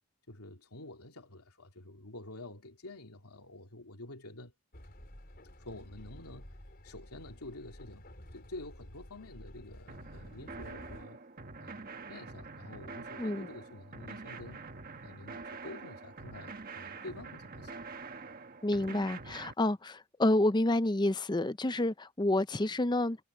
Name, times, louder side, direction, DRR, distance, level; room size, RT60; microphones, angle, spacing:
voice 1, 0.3-4.5 5.6-11.2 11.6-14.6 15.0-17.8, left 2 dB, 85° left, 2.9 m, -48 dB
Train, 4.7-11.0, equal, 45° left, 4.9 m, -51 dB
sound 1, 9.9-19.5, right 4 dB, 40° right, 1.4 m, -46 dB
voice 2, 18.6-23.2, left 1 dB, 20° left, 0.6 m, -29 dB
head